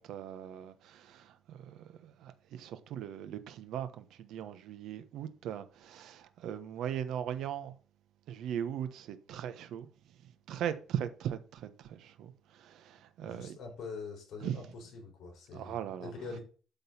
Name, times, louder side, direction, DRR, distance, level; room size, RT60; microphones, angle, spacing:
voice 1, 0.0-7.7 8.3-9.9 10.5-13.6 14.4-14.6 15.5-16.1, right 10 dB, 70° right, 1.1 m, -39 dB
voice 2, 13.2-16.4, left 4 dB, 60° left, 4.4 m, -44 dB
12.0 x 4.0 x 7.2 m
cardioid pair, 155°, 0 cm